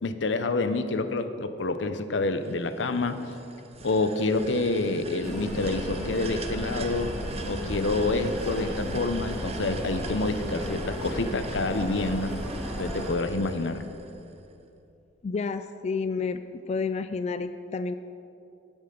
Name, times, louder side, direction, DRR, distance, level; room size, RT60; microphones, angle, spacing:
voice 1, 0.0-3.2 3.8-7.1 7.5-12.4 12.8-13.8, left 3 dB, 85° left, 10 dB, 0.7 m, -28 dB
sound 1, 2.4-14.5, right 4 dB, 35° right, 0.8 m, -43 dB
sound 2, 5.2-13.1, equal, ahead, 3.1 m, -34 dB
voice 2, 15.2-16.4 16.7-18.0, left 4 dB, 35° left, 10 dB, 0.3 m, -30 dB
16.0 x 8.9 x 3.9 m, 2.7 s
head